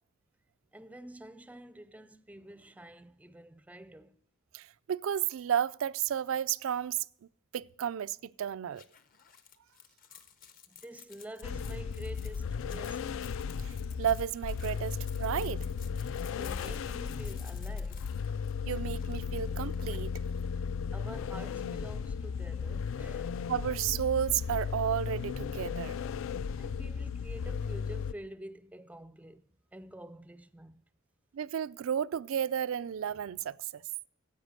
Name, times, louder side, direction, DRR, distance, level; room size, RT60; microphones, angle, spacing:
voice 1, 0.7-4.2 10.7-13.4 16.3-18.2 20.9-23.4 26.6-30.8, right 1 dB, 5° right, 0.4 m, -48 dB
voice 2, 4.5-7.0 7.5-8.8 13.6-15.7 18.6-20.1 23.5-26.0 31.3-33.8, right 9 dB, 70° right, 0.4 m, -32 dB
sound 1, 8.7-20.4, left 8 dB, 45° left, 0.8 m, -55 dB
sound 2, 11.4-28.1, left 6 dB, 70° left, 0.3 m, -35 dB
10.0 x 8.1 x 6.3 m
head